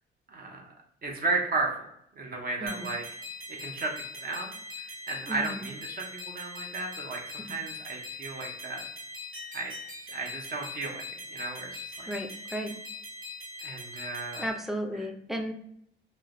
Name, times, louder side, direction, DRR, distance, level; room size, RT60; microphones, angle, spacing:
voice 1, 0.3-0.7 1.0-1.9 2.1-3.0 3.6-8.8 9.5-9.7 10.0-12.1 13.6-14.4 14.9-15.0, right 3 dB, 50° right, 0 dB, 0.7 m, -34 dB
sound 1, 2.7-14.5, left 2 dB, 80° right, 1.3 m, -42 dB
voice 2, 12.1-12.8 14.4-15.5, right 1 dB, ahead, 3 dB, 0.4 m, -34 dB
3.0 x 2.0 x 2.5 m, 0.71 s
cardioid pair, 90°, 20 cm